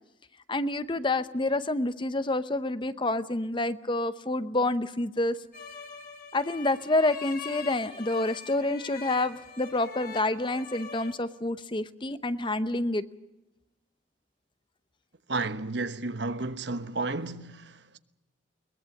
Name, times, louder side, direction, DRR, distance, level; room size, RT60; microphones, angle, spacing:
voice 1, 0.5-5.4 6.3-13.0, left 2 dB, 25° left, 0.8 m, -28 dB
sound 1, 5.5-11.1, left 5 dB, 50° left, 3.1 m, -43 dB
voice 2, 15.3-18.0, right 3 dB, 65° right, 1.2 m, -32 dB
22.0 x 21.0 x 7.2 m
head